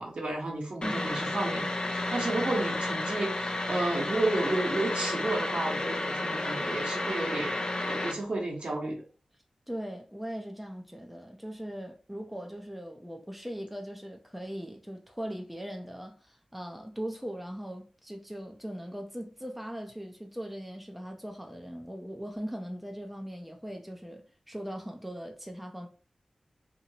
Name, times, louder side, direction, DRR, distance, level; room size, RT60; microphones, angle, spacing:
voice 1, 0.0-7.6 7.9-9.0, right 2 dB, 65° right, 1.2 m, -32 dB
sound 1, 0.8-8.1, left 2 dB, 45° left, 0.5 m, -31 dB
voice 2, 0.8-1.1 9.7-25.9, equal, 5° right, 0.6 m, -40 dB
2.9 x 2.6 x 2.9 m
cardioid pair, 40°, 2 cm